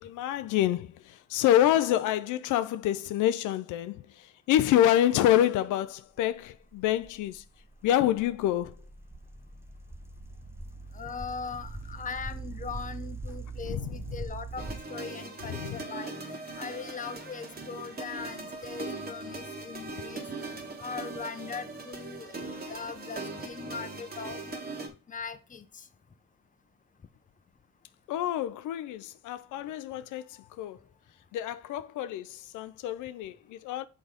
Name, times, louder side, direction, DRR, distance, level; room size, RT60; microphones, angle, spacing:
voice 1, 0.0-7.4 7.8-8.8 13.6-14.2 15.5-15.8 28.1-30.8 31.3-33.8, left 12 dB, 85° left, 0.5 m, -27 dB
sound 1, 6.3-14.8, right 3 dB, 10° right, 0.5 m, -42 dB
voice 2, 10.9-24.6 25.1-25.9, left 5 dB, 25° left, 0.7 m, -40 dB
sound 2, 14.6-24.9, right 3 dB, 30° right, 1.5 m, -40 dB
6.1 x 3.9 x 5.0 m
cardioid pair, 90°, 30 cm